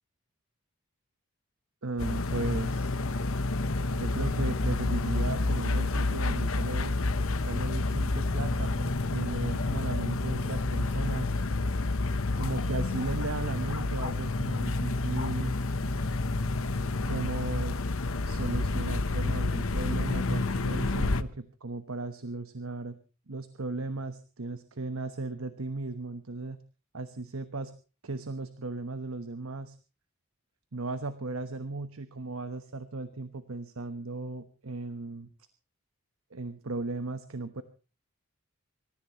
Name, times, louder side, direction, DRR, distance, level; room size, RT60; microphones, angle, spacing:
voice 1, 1.8-3.3 3.9-6.9 7.5-11.3 12.4-15.6 17.1-17.8 18.2-23.0 23.3-26.6 26.9-27.7 28.0-29.8 30.7-35.3 36.3-37.6, right 3 dB, 85° right, 10 dB, 1.1 m, -36 dB
sound 1, 2.0-21.2, left 2 dB, 75° left, 1.0 m, -29 dB
25.5 x 14.5 x 3.1 m, 0.34 s
head